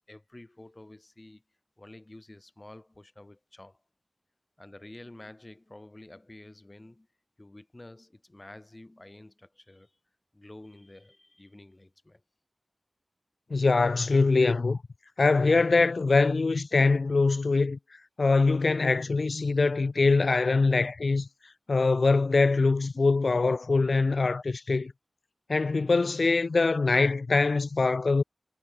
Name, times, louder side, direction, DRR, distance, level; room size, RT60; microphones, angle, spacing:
voice 1, 0.1-1.4 1.8-3.8 4.6-7.1 7.4-10.0 10.3-12.2, left 1 dB, 30° left, 6.0 m, -50 dB
voice 2, 13.5-14.8 15.2-17.8 18.2-21.3 21.7-24.9 25.5-28.2, left 3 dB, 75° left, 0.3 m, -23 dB
wide cardioid pair, 65°, 0 cm